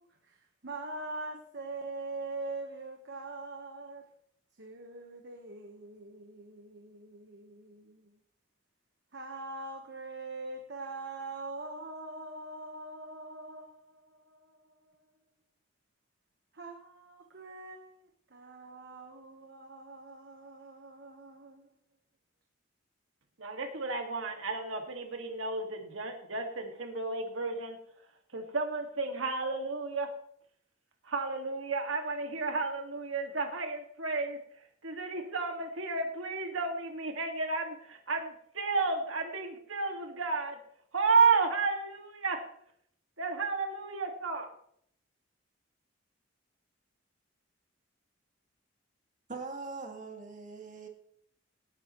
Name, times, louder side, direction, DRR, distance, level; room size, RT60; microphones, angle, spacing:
voice 1, 0.0-4.1 4.6-8.1 9.1-15.0 16.5-21.7, right 2 dB, 60° right, 3 dB, 1.4 m, -43 dB
voice 2, 23.4-27.8 28.3-30.1 31.1-34.4 34.8-40.6 40.9-42.4 43.2-44.5, right 4 dB, 90° right, 4 dB, 2.1 m, -32 dB
voice 3, 49.3-50.9, right 4 dB, 40° right, 3 dB, 2.2 m, -41 dB
18.0 x 9.8 x 3.2 m, 0.67 s
head